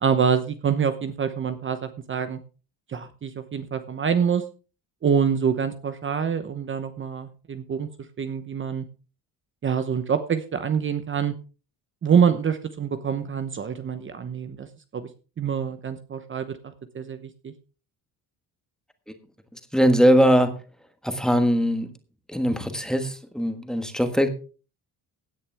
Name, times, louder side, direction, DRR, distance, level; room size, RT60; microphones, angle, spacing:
voice 1, 0.0-2.4 2.9-4.4 5.0-7.9 8.2-8.8 9.6-11.3 12.0-14.7 14.9-15.1 15.4-17.5, right 7 dB, 30° right, 9 dB, 1.0 m, -25 dB
voice 2, 19.5-20.5 21.0-21.9 22.3-24.3, equal, ahead, 7 dB, 1.5 m, -21 dB
16.5 x 10.0 x 3.5 m, 0.36 s
cardioid pair, 165°, 38 cm